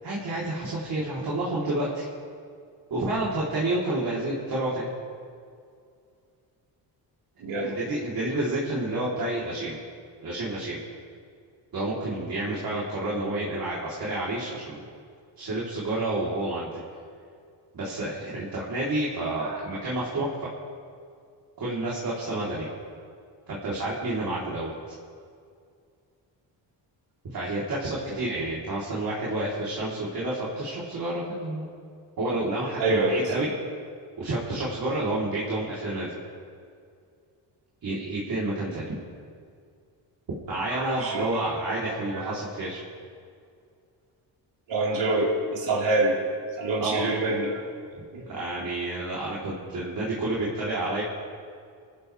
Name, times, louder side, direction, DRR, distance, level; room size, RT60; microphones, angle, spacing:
voice 1, 0.0-2.1 2.9-4.9 7.6-9.8 10.2-10.8 11.7-14.8 15.4-16.8 17.7-20.3 21.6-22.7 23.5-24.9 27.3-31.7 32.2-33.5 34.2-36.1 37.8-38.9 40.5-42.8 46.8-47.1 48.2-51.0, right 2 dB, 55° right, -7 dB, 3.8 m, -29 dB
voice 2, 7.4-7.8 19.5-19.6 32.8-33.2 40.7-41.4 42.2-42.3 44.7-46.2 46.6-47.5 48.1-48.2, right 2 dB, 80° right, -4 dB, 4.6 m, -26 dB
27.0 x 14.0 x 3.5 m, 2.3 s
cardioid pair, 125°, 43 cm